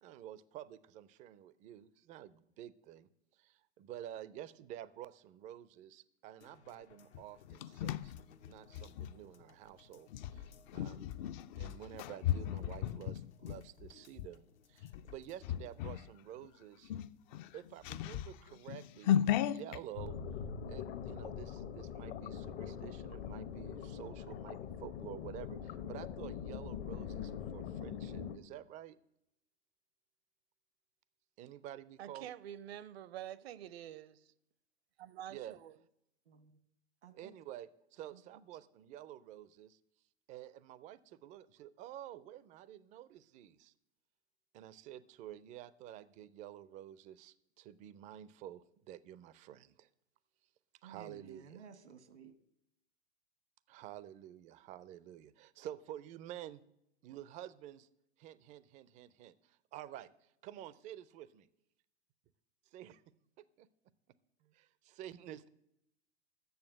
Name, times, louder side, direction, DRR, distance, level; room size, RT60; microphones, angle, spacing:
voice 1, 0.0-11.1 11.6-16.9 17.5-20.2 20.6-29.0 31.4-32.3 35.3-35.6 37.1-39.8 40.3-43.7 44.5-49.9 50.8-51.6 53.7-56.6 57.0-57.9 58.2-61.5 62.7-63.0 63.4-63.7 64.4-65.5, right 12 dB, 25° right, 0.4 m, -50 dB
sound 1, 6.4-15.8 16.2-16.3, left 8 dB, 85° left, 0.9 m, -60 dB
sound 2, 7.1-9.1 10.1-14.3 14.8-15.1 15.4-16.1 16.4-16.5 16.8-19.8, left 11 dB, 45° left, 0.4 m, -36 dB
sound 3, 19.9-28.4, left 8 dB, 60° left, 0.9 m, -43 dB
voice 2, 32.0-34.3 35.0-35.7, right 11 dB, 65° right, 0.7 m, -47 dB
voice 3, 37.0-37.3 38.1-38.2 50.8-52.3, right 7 dB, 85° right, 1.2 m, -54 dB
7.9 x 6.9 x 7.7 m
hypercardioid pair, 110°, 33 cm